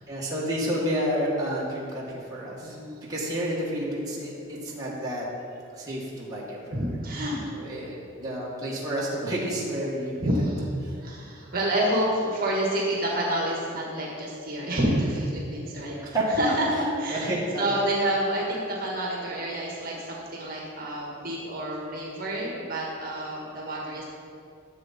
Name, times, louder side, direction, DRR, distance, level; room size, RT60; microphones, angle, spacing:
voice 1, 0.1-2.8 3.1-5.3 5.7-6.6 7.5-10.5 10.8-11.0 16.0-16.6 17.1-17.7 23.8-23.9, equal, 15° right, -6 dB, 1.9 m, -30 dB
voice 2, 2.6-3.0 5.7-5.8 6.7-7.5 10.2-16.0 16.4-17.2 17.6-24.0, right 1 dB, 45° right, -3 dB, 1.8 m, -28 dB
14.0 x 7.5 x 4.4 m, 2.5 s
head